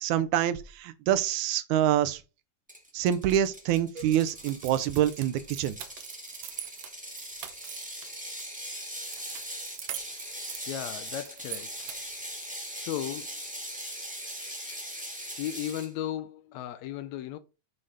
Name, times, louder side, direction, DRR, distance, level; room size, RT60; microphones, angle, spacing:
voice 1, 0.0-2.2 2.9-5.8, right 11 dB, 90° right, 2.1 m, -26 dB
Ratchet pawl, 2.7-15.9, equal, 5° right, 1.1 m, -40 dB
sound 1, 3.9-6.0, right 2 dB, 40° right, 3.8 m, -52 dB
sound 2, 4.4-8.5 9.0-12.2, right 11 dB, 70° right, 1.9 m, -43 dB
voice 2, 10.7-11.8 12.7-13.4 14.7-14.8 15.4-17.4, left 11 dB, 75° left, 1.8 m, -35 dB
7.6 x 4.9 x 4.0 m
omnidirectional pair, 3.4 m